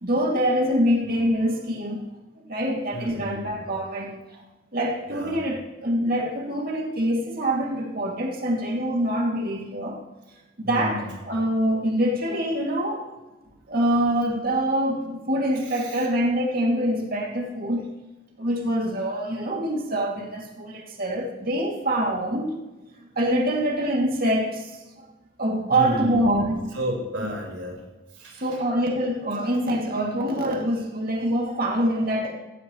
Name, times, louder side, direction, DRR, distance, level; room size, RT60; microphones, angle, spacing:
voice 1, 0.0-2.1 2.5-4.4 4.7-10.0 10.6-13.1 13.7-17.9 18.4-22.6 23.2-25.1 25.4-26.7 28.4-32.3, right 1 dB, 55° right, 0 dB, 2.5 m, -25 dB
voice 2, 2.9-3.5 5.1-5.4 10.6-10.9 15.6-15.9 25.7-26.2 26.7-27.8 28.2-28.6, equal, 80° right, -1 dB, 4.7 m, -31 dB
16.0 x 15.5 x 3.1 m, 1.1 s
head